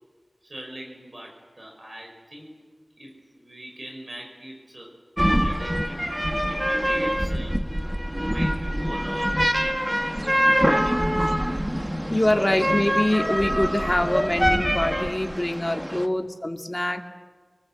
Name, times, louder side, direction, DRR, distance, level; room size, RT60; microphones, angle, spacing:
voice 1, 0.4-2.6 3.0-4.9 5.3-6.1 6.5-7.6 8.3-9.8 10.5-11.0, right 1 dB, 60° right, 1 dB, 6.0 m, -41 dB
sound 1, 5.2-16.1, equal, 10° right, 2.0 m, -24 dB
voice 2, 12.1-17.0, left 1 dB, 25° left, 3 dB, 2.7 m, -24 dB
29.0 x 20.0 x 8.0 m, 1.5 s
wide cardioid pair, 40°, 0 cm